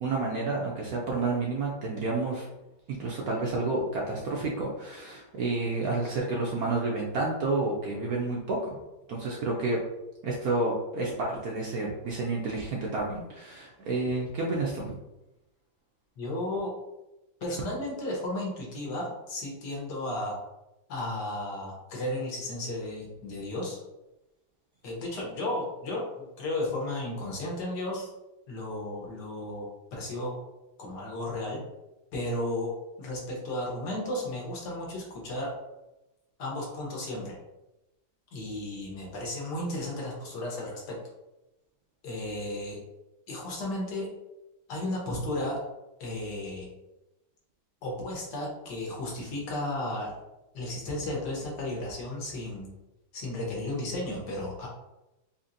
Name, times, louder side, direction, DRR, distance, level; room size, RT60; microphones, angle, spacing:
voice 1, 0.0-2.5 3.0-8.8 9.1-9.8 10.2-15.0, right 3 dB, 70° right, -2 dB, 0.9 m, -30 dB
voice 2, 16.2-16.7 17.4-20.4 20.9-23.8 24.8-28.1 28.5-30.4 30.8-31.6 32.1-32.7 33.0-35.5 36.4-37.4 38.3-41.0 42.0-42.8 43.3-44.1 44.7-45.6 46.0-46.7 47.8-50.2 50.5-52.7 53.1-54.7, left 1 dB, 65° left, -2 dB, 1.5 m, -34 dB
4.2 x 2.8 x 2.6 m, 0.97 s
omnidirectional pair, 2.1 m